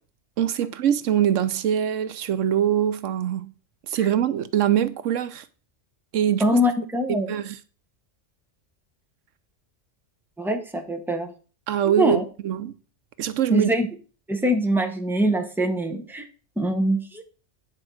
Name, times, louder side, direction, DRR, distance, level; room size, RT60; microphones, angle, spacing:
voice 1, 0.4-3.5 3.9-5.4 6.1-6.5 7.3-7.6 11.7-12.7 13.2-13.7, right 10 dB, 80° right, 1.0 m, -23 dB
voice 2, 6.4-7.4 10.4-11.3 11.8-12.2 13.5-13.9 14.3-16.3 16.6-17.2, equal, ahead, 1.0 m, -23 dB
9.7 x 4.7 x 6.2 m
omnidirectional pair, 1.3 m